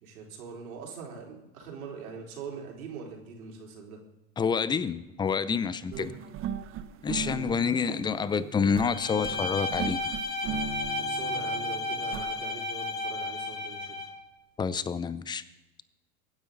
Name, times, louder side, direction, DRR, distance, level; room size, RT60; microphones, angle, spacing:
voice 1, 0.0-4.0 5.8-6.1 7.3-7.6 10.9-14.1, right 5 dB, 70° right, 4.1 m, -42 dB
voice 2, 4.4-6.1 7.0-10.0 14.6-15.4, left 6 dB, 10° left, 0.5 m, -28 dB
sound 1, 5.9-12.4, right 7 dB, 30° right, 0.8 m, -38 dB
Bowed string instrument, 8.8-14.2, left 2 dB, 60° left, 6.3 m, -33 dB
23.5 x 9.4 x 3.9 m
hypercardioid pair, 95°, 43 cm